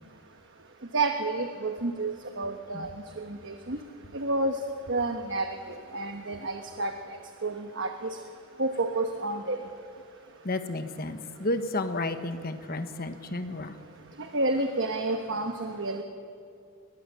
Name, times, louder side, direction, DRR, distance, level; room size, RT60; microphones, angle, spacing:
voice 1, 0.9-2.9 3.2-3.8 4.1-4.6 4.9-5.5 5.9-6.9 7.4-8.2 8.6-9.6 14.3-16.0, right 2 dB, 55° right, 5 dB, 1.2 m, -29 dB
voice 2, 10.4-13.8, left 2 dB, 40° left, 8 dB, 1.2 m, -32 dB
21.5 x 20.5 x 6.9 m, 2.3 s
head